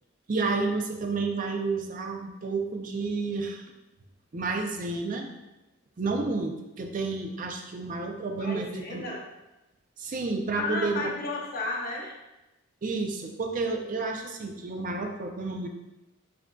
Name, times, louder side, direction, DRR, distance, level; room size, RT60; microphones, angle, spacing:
voice 1, 0.3-3.7 4.3-5.3 6.0-9.0 10.0-11.1 12.8-15.7, right 3 dB, 35° right, 4 dB, 0.4 m, -30 dB
voice 2, 8.3-9.3 10.5-12.2, left 2 dB, 40° left, -3 dB, 0.9 m, -33 dB
7.2 x 2.5 x 2.2 m, 0.98 s
head